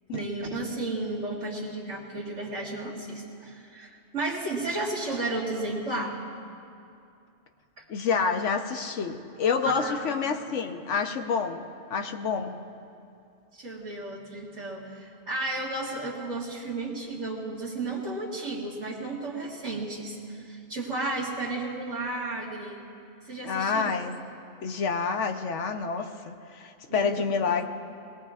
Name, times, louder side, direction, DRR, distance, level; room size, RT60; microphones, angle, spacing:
voice 1, 0.1-6.2 7.8-7.9 9.6-10.5 13.5-22.8 23.2-23.9 26.9-27.1, right 2 dB, 70° right, -11 dB, 2.2 m, -33 dB
voice 2, 7.9-12.6 23.4-24.1 24.6-27.7, left 5 dB, 65° left, 6 dB, 1.1 m, -28 dB
21.5 x 19.0 x 2.4 m, 2.6 s
omnidirectional pair, 1.3 m